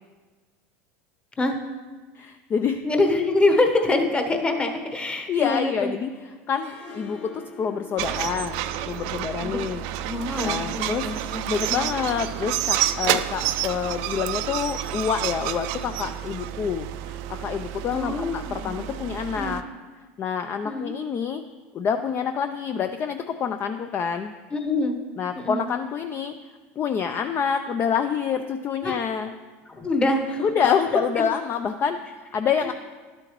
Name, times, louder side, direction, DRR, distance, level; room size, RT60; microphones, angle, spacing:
voice 1, 2.1-2.8 5.3-6.1 6.5-8.6 8.9-9.8 10.4-11.1 11.5-19.6 20.2-21.4 21.7-24.3 25.2-26.3 26.8-29.3 30.4-32.7, left 7 dB, 35° left, 7 dB, 0.4 m, -27 dB
voice 2, 2.8-5.9 9.4-9.6 10.0-11.4 11.8-11.9 17.9-18.7 19.4-19.6 20.6-21.0 24.5-25.0 25.3-25.7 28.8-29.0 29.7-30.5 31.2-31.3, left 2 dB, 15° left, 4 dB, 1.1 m, -25 dB
Harp, 6.5-11.6, left 5 dB, 60° left, 2.7 m, -46 dB
sound 1, 8.0-19.6, right 12 dB, 65° right, 0.4 m, -29 dB
11.5 x 7.7 x 3.1 m, 1.4 s
supercardioid pair, 105°, 7 cm